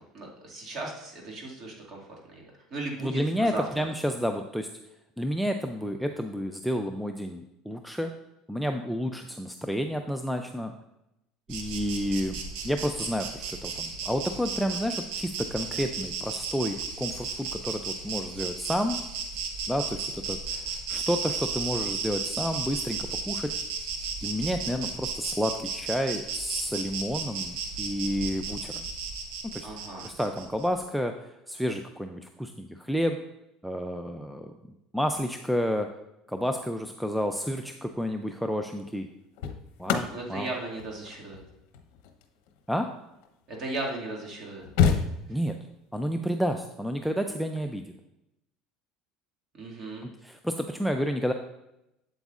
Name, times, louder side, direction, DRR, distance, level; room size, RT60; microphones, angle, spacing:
voice 1, 0.1-2.0 2.3-2.4 2.7-3.8 29.6-30.1 40.1-41.4 43.5-44.7 49.6-50.1, right 2 dB, 35° right, -1 dB, 2.0 m, -36 dB
voice 2, 3.0-4.7 5.2-8.1 8.5-10.7 11.5-19.0 19.7-23.5 24.2-28.9 29.5-29.7 30.0-33.2 33.6-34.5 34.9-35.9 36.3-39.1 39.8-40.5 42.7-42.9 45.3-45.6 45.9-47.8 50.2-51.3, equal, ahead, 6 dB, 0.3 m, -30 dB
Insect, 11.5-30.7, right 5 dB, 80° right, 1.0 m, -34 dB
sound 1, 37.8-38.1 39.0-43.6 44.1-44.2 44.4-45.7 47.3-47.6, left 7 dB, 75° left, 0.8 m, -30 dB
8.0 x 7.8 x 2.4 m, 0.87 s
cardioid pair, 145°, 0 cm